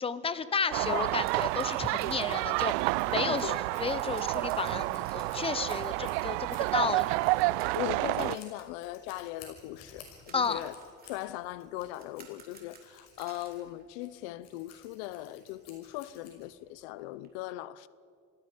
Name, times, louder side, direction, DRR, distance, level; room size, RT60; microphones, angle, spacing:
voice 1, 0.0-3.5 3.8-7.1 10.3-10.6, left 5 dB, 20° left, 0.8 m, -32 dB
sound 1, 0.6-14.6 14.8-15.0 15.4-15.5 15.7-17.3, right 5 dB, 30° right, 3.5 m, -58 dB
sound 2, 0.7-8.4, right 21 dB, 85° right, 0.5 m, -30 dB
Scissors, 1.1-16.8, left 6 dB, 55° left, 5.9 m, -57 dB
voice 2, 3.2-3.6 7.7-10.7 11.0-17.9, left 15 dB, 80° left, 0.8 m, -39 dB
27.5 x 19.0 x 5.2 m
cardioid pair, 135°, 31 cm